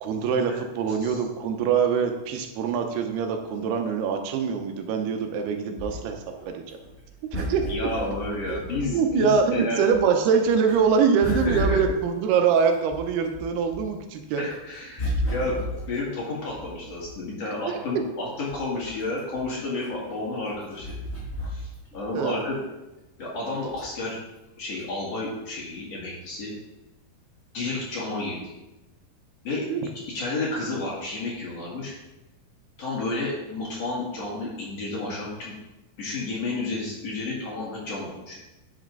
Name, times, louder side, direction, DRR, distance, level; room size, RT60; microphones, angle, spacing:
voice 1, 0.0-6.2 6.5-6.6 7.3-7.7 8.9-14.4 15.1-15.2 22.1-22.4 29.7-29.8, right 6 dB, 85° right, 5 dB, 2.9 m, -24 dB
sound 1, 5.8-9.5 9.9-14.0 14.4-17.4 17.9-18.0 18.3-22.1 22.4-22.5 23.7-24.1 24.7-24.8, equal, 15° left, 3.6 m, -33 dB
voice 2, 7.7-9.8 11.2-11.8 14.4-21.0 21.5-21.7 21.9-22.6 23.2-24.2 24.6-26.5 27.5-28.5 29.4-29.7 30.1-31.9 32.8-35.6 36.0-38.3, left 2 dB, 45° left, -4 dB, 2.7 m, -31 dB
11.0 x 6.4 x 3.9 m, 1.0 s
omnidirectional pair, 4.6 m